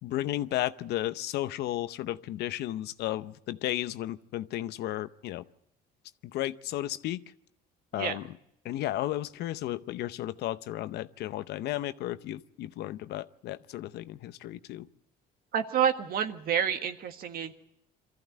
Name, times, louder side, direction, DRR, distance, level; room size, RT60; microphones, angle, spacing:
voice 1, 0.0-5.4 6.2-7.2 7.9-8.3 8.6-14.9, left 14 dB, 75° left, 14 dB, 0.8 m, -34 dB
voice 2, 15.5-17.5, right 8 dB, 60° right, 8 dB, 1.6 m, -28 dB
24.0 x 14.5 x 9.3 m, 0.82 s
cardioid pair, 110°, 17 cm